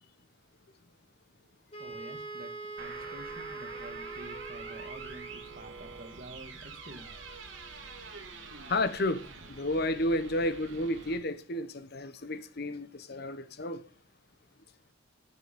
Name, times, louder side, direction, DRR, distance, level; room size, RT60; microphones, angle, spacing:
Wind instrument woodwind instrument, 1.7-5.7, right 3 dB, 30° left, 4.0 m, -43 dB
voice 1, 1.8-7.1, right 1 dB, 45° right, 1.7 m, -49 dB
sound 1, 2.8-11.2, right 4 dB, 75° right, 2.5 m, -46 dB
voice 2, 8.7-9.2 9.5-13.8, left 1 dB, 50° left, 1.0 m, -31 dB
10.5 x 8.1 x 5.2 m
head